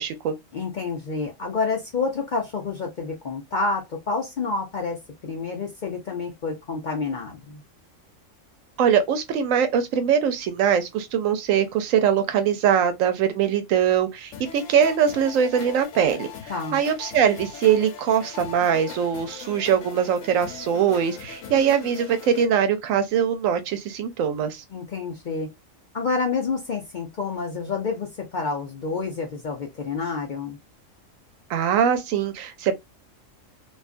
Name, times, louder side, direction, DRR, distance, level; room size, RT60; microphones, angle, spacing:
voice 1, 0.0-0.3 8.8-16.3 16.7-24.6 31.5-32.8, right 8 dB, 85° right, 1.0 m, -22 dB
voice 2, 0.5-7.6 16.5-16.8 24.7-25.5 25.9-30.6, left 4 dB, 55° left, 0.5 m, -28 dB
sound 1, 14.3-22.5, left 7 dB, 80° left, 1.0 m, -40 dB
2.5 x 2.3 x 2.4 m
omnidirectional pair, 1.3 m